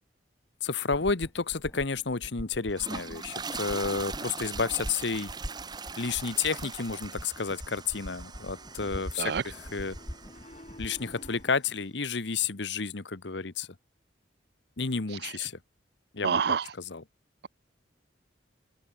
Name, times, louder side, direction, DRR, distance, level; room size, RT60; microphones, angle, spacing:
voice 1, 0.6-5.3 6.0-10.0 10.8-13.7 14.8-15.6 16.1-16.4 16.9-17.0, left 5 dB, 70° left, 1.2 m, -31 dB
sound 1, 0.9-11.4, equal, 15° left, 4.0 m, -43 dB
sound 2, 2.6-10.9, right 4 dB, 20° right, 1.2 m, -41 dB
Piano, 8.2-11.7, left 1 dB, 35° left, 7.4 m, -52 dB
voice 2, 16.2-16.7, right 6 dB, 60° right, 0.5 m, -27 dB
open air
head